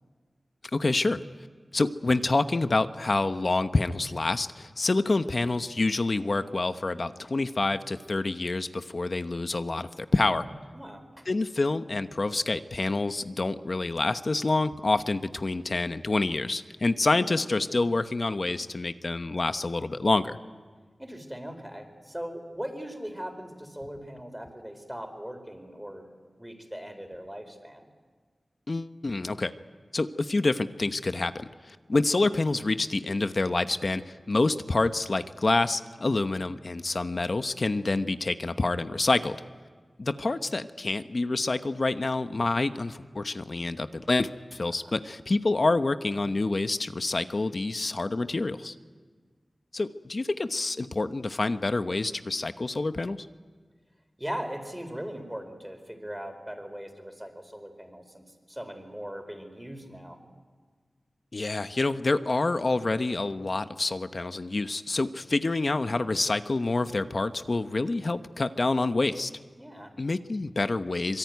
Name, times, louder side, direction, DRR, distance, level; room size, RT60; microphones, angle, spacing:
voice 1, 0.7-1.2 1.7-10.5 11.3-20.4 28.7-29.5 29.9-39.4 40.0-48.7 49.7-53.2 61.3-69.3 70.0-71.2, left 2 dB, 55° left, 10 dB, 1.0 m, -27 dB
voice 2, 10.7-11.2 21.0-26.1 26.4-27.9 44.7-44.8 54.2-60.2 69.6-69.9, equal, 10° right, 7 dB, 4.5 m, -39 dB
25.5 x 23.0 x 9.5 m, 1.5 s
wide cardioid pair, 65°, 0 cm